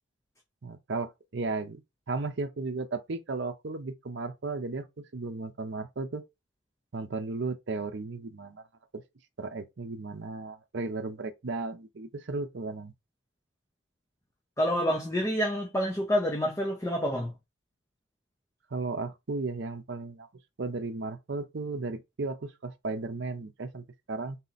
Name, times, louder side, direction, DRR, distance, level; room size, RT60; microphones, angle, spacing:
voice 1, 0.6-6.2 6.9-8.6 8.9-9.0 9.4-12.9 18.7-20.3 20.6-24.4, right 3 dB, 60° right, 0.6 m, -35 dB
voice 2, 14.6-17.3, equal, 15° left, 0.7 m, -28 dB
4.1 x 2.8 x 4.0 m
head